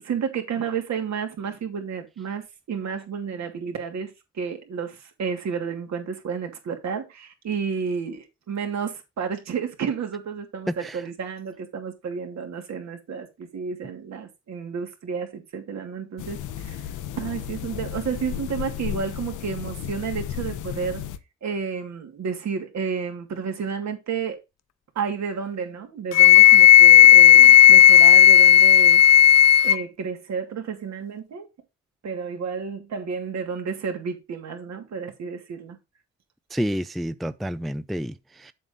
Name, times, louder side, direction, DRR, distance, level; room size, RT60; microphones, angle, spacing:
voice 1, 0.0-16.8 17.1-21.0 21.4-24.4 24.9-29.0 29.6-31.5 32.0-35.8, right 6 dB, 65° right, 2.8 m, -31 dB
sound 1, 16.2-21.2, left 10 dB, 80° left, 1.0 m, -33 dB
Wind instrument woodwind instrument, 26.1-29.8, left 10 dB, 60° left, 0.5 m, -11 dB
voice 2, 36.5-38.5, equal, ahead, 0.4 m, -29 dB
7.6 x 7.1 x 3.9 m
cardioid pair, 90°, 30 cm